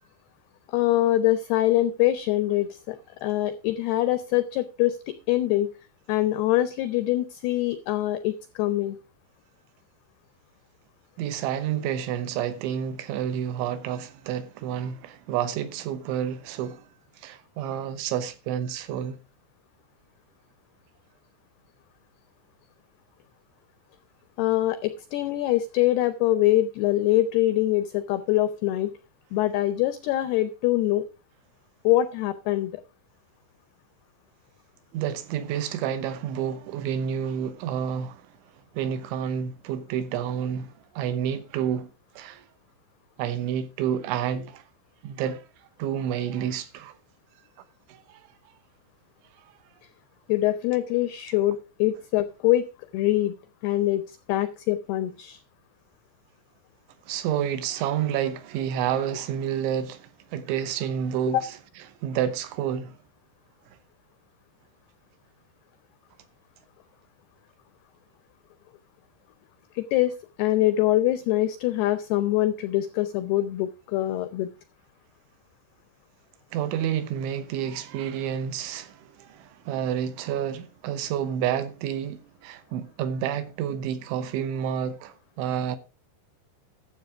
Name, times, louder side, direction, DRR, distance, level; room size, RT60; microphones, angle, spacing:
voice 1, 0.7-3.0 3.2-5.7 6.1-9.0 24.4-28.9 29.3-31.0 31.8-32.7 50.3-52.6 52.9-53.3 53.6-54.0 54.3-55.4 61.3-61.4 69.7-74.5, left 14 dB, 85° left, 2.3 m, -24 dB
voice 2, 11.2-16.9 17.2-19.2 34.9-38.3 38.7-42.5 43.2-44.6 45.0-45.4 45.8-47.0 47.9-48.2 57.1-61.6 62.0-63.0 76.5-85.8, right 9 dB, 80° right, 3.3 m, -29 dB
12.0 x 7.4 x 4.7 m
omnidirectional pair, 5.4 m